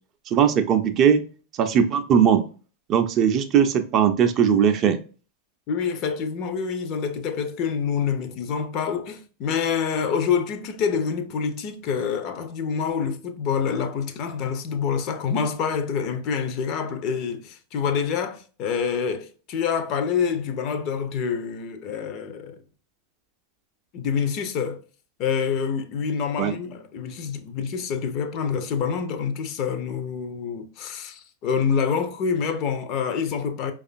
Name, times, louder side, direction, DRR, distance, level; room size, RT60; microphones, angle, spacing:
voice 1, 0.3-1.2 1.6-2.4 2.9-5.0 26.4-26.5, right 8 dB, 35° right, 0.4 m, -19 dB
voice 2, 5.7-22.6 23.9-24.8 25.2-33.7, left 6 dB, 40° left, 0.5 m, -27 dB
4.8 x 2.3 x 2.5 m
figure-of-eight pair, 90°, 0 cm